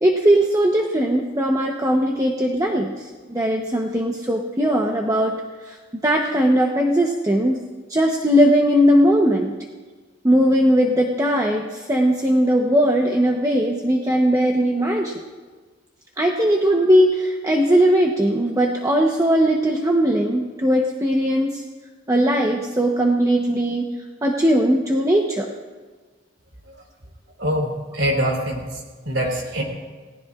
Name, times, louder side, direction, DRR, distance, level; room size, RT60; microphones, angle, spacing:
voice 1, 0.0-2.9 3.3-5.4 5.7-5.8 6.0-7.6 7.9-9.5 10.2-15.1 16.2-21.6 22.1-23.9 24.2-25.5, equal, 15° right, 1 dB, 0.9 m, -19 dB
voice 2, 27.4-28.7 29.0-29.6, equal, 70° right, 0 dB, 3.7 m, -23 dB
29.0 x 18.5 x 2.5 m, 1.4 s
head